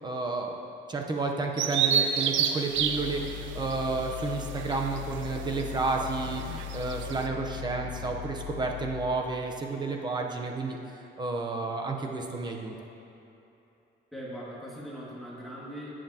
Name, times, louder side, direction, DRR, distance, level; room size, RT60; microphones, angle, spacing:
voice 1, 0.0-0.5 0.9-10.8 11.2-12.7, right 3 dB, 20° right, 1 dB, 0.9 m, -31 dB
Bird vocalization bird call bird song, 1.6-7.3, right 8 dB, 80° right, 0.6 m, -30 dB
sound 1, 2.7-9.3, left 11 dB, 70° left, 2.0 m, -39 dB
voice 2, 14.1-15.9, equal, ahead, -8 dB, 2.2 m, -40 dB
18.0 x 7.5 x 2.9 m, 2.9 s
cardioid pair, 150°, 19 cm